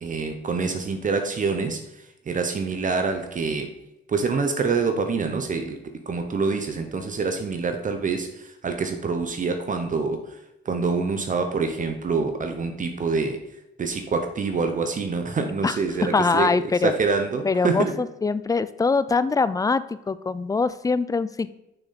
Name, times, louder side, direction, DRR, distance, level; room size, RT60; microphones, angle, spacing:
voice 1, 0.0-3.7 4.1-5.8 6.1-10.4 10.6-13.4 13.8-16.5 16.8-17.9, right 4 dB, 40° right, 6 dB, 0.9 m, -26 dB
voice 2, 15.6-16.9 17.4-21.5, left 4 dB, 15° left, 15 dB, 0.4 m, -23 dB
6.5 x 6.0 x 4.2 m, 0.89 s
cardioid pair, 90°, 20 cm